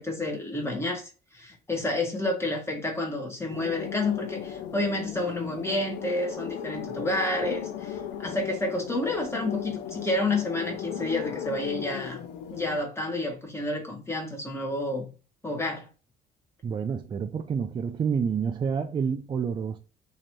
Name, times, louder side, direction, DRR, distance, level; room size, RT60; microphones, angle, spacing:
voice 1, 0.0-12.2 12.5-15.1 15.4-15.9, left 2 dB, 15° left, 1.4 m, -30 dB
sound 1, 3.5-12.8, left 9 dB, 80° left, 0.5 m, -37 dB
voice 2, 16.6-19.8, right 6 dB, 30° right, 0.3 m, -28 dB
3.0 x 2.8 x 4.5 m
cardioid pair, 110°, 17 cm